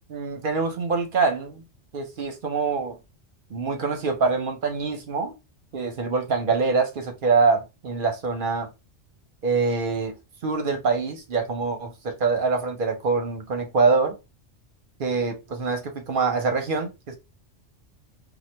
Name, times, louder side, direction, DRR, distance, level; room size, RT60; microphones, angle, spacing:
voice 1, 0.1-1.6 1.9-3.0 3.5-5.3 5.7-8.7 9.4-10.1 10.4-14.2 15.0-17.2, right 4 dB, 55° right, 0.7 m, -24 dB
2.8 x 2.2 x 3.2 m
omnidirectional pair, 1.2 m